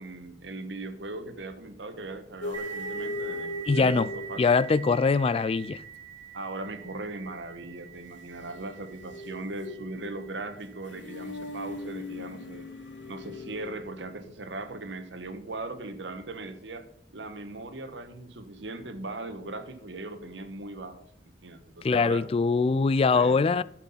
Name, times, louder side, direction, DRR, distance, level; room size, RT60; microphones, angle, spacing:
voice 1, 0.0-4.4 6.3-12.7 13.1-16.9 17.1-21.0 21.4-22.2 23.1-23.4, right 2 dB, 80° right, 1.3 m, -39 dB
sound 1, 2.4-5.0 8.5-13.7, left 2 dB, 85° left, 0.8 m, -39 dB
sound 2, 2.5-11.8, right 7 dB, 30° right, 3.1 m, -44 dB
voice 2, 3.7-4.1 4.4-5.8 21.8-23.6, left 4 dB, 30° left, 0.3 m, -23 dB
12.0 x 6.0 x 5.6 m
head